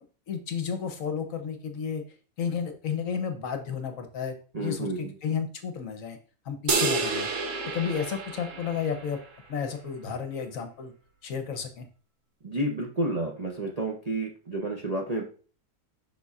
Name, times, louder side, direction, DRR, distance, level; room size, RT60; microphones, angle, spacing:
voice 1, 0.3-2.0 2.4-6.2 6.4-7.3 7.7-9.2 9.5-10.9 11.2-11.8, left 7 dB, 60° left, 6 dB, 1.2 m, -32 dB
voice 2, 4.5-5.2 12.4-15.2, right 1 dB, 35° right, 0 dB, 0.6 m, -30 dB
sound 1, 6.7-9.2, right 4 dB, 55° right, 1.2 m, -29 dB
6.8 x 6.1 x 2.4 m, 0.39 s
omnidirectional pair, 1.7 m